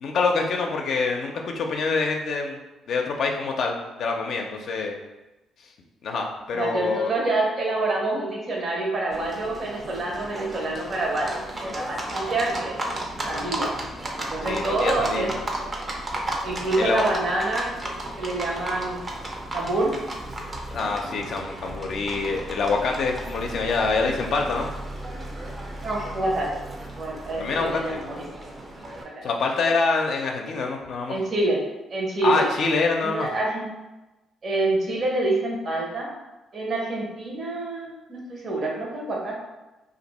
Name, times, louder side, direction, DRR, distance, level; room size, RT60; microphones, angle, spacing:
voice 1, 0.0-2.6 2.9-4.9 6.0-7.1 14.4-15.4 16.8-17.0 20.7-24.7 27.4-28.0 29.2-31.2 32.2-33.3, left 4 dB, 65° left, 2 dB, 0.5 m, -25 dB
voice 2, 6.5-11.3 11.6-12.8 13.2-13.7 14.2-15.4 16.4-17.9 18.2-19.0 19.5-19.9 25.8-26.5 27.0-28.3 29.1-29.2 31.1-31.6 31.9-32.4 33.0-33.7 34.4-36.1 36.5-39.3, right 2 dB, 50° right, -2 dB, 0.9 m, -27 dB
Livestock farm animals working animals, 9.1-29.0, right 1 dB, 30° right, 0.6 m, -34 dB
2.5 x 2.5 x 4.1 m, 1.1 s
cardioid pair, 100°, 0 cm